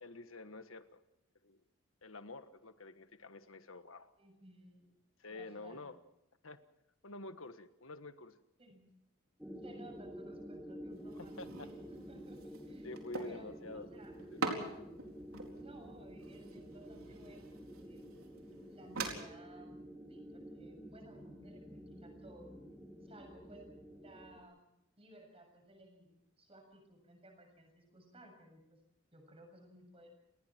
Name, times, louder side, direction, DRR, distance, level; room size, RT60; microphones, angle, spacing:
voice 1, 0.0-1.0 1.4-1.6 2.0-4.1 5.2-6.0 6.4-6.6 7.0-8.4 11.4-11.7 12.8-13.9 14.3-14.7, left 2 dB, 70° left, 10 dB, 1.5 m, -48 dB
voice 2, 4.2-4.9 5.3-5.8 8.6-8.9 9.6-11.4 11.7-12.9 13.2-14.2 15.5-17.5 17.8-18.1 18.7-22.6 23.0-24.6 25.0-28.8 29.1-30.1, right 1 dB, 25° right, 4 dB, 7.1 m, -58 dB
sound 1, 9.4-24.4, equal, 5° right, 2.4 m, -50 dB
Metal and Wood Movements, 10.9-19.1, right 3 dB, 85° right, 4.2 m, -45 dB
29.5 x 20.0 x 4.5 m, 0.82 s
head